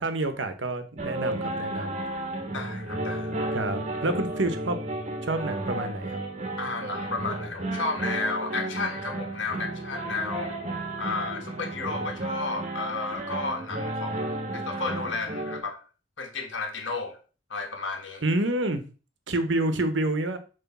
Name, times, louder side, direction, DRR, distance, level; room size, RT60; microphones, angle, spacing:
voice 1, 0.0-2.0 3.5-4.8 5.2-6.2 18.2-18.8 19.3-20.4, right 2 dB, 70° right, 1.0 m, -28 dB
sound 1, 1.0-15.6, right 1 dB, 35° right, 1.2 m, -33 dB
voice 2, 2.5-3.4 6.6-10.6 11.0-15.8 16.2-17.2 17.5-18.2, left 3 dB, 75° left, 1.6 m, -33 dB
7.2 x 3.2 x 5.9 m
head